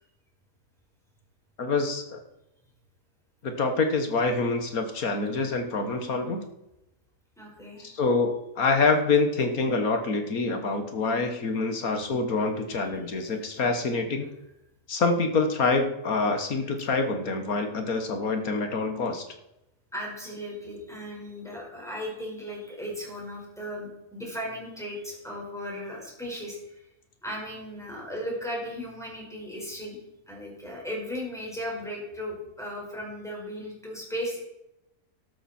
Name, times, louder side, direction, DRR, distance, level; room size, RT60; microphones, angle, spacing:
voice 1, 1.6-2.2 3.4-6.4 7.8-14.3 14.9-19.2, left 3 dB, 65° left, 6 dB, 1.9 m, -26 dB
voice 2, 7.4-7.8 19.9-26.8 27.2-30.0 30.3-34.4, equal, ahead, -3 dB, 5.0 m, -36 dB
12.5 x 12.5 x 4.4 m, 0.87 s
omnidirectional pair, 1.6 m